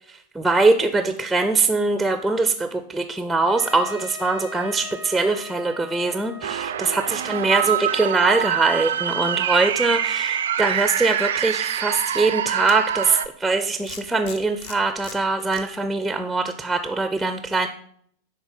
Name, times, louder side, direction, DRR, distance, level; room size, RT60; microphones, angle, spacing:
voice 1, 0.3-17.7, right 3 dB, 5° right, 8 dB, 0.5 m, -22 dB
Trumpet, 3.5-8.3, left 2 dB, 80° left, 2.2 m, -40 dB
sound 1, 6.4-13.3, right 10 dB, 60° right, 0.3 m, -25 dB
sound 2, 11.2-11.3 12.6-13.1 13.9-15.6, left 6 dB, 55° left, 0.8 m, -39 dB
10.0 x 3.8 x 4.3 m, 0.63 s
figure-of-eight pair, 90°, 0 cm